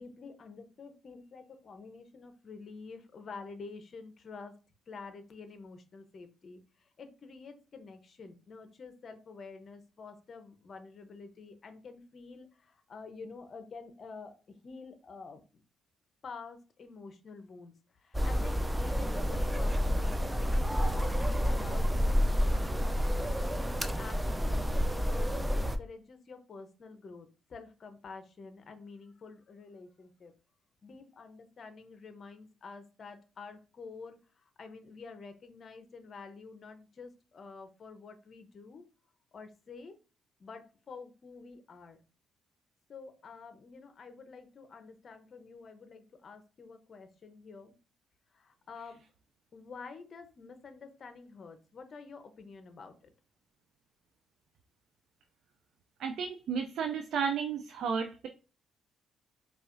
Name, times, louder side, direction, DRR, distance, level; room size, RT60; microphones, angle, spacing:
voice 1, 0.0-4.5 4.9-15.4 16.2-22.8 23.5-30.3 30.8-38.9 39.3-40.0 40.4-42.0 42.9-47.7 48.3-49.0 49.5-53.1, left 4 dB, 45° left, 8 dB, 0.7 m, -49 dB
sound 1, 18.1-25.8, equal, 10° right, 0.4 m, -29 dB
voice 2, 56.0-58.3, right 6 dB, 70° right, 5 dB, 0.4 m, -33 dB
4.8 x 2.4 x 2.5 m, 0.34 s
cardioid pair, 95°, 0 cm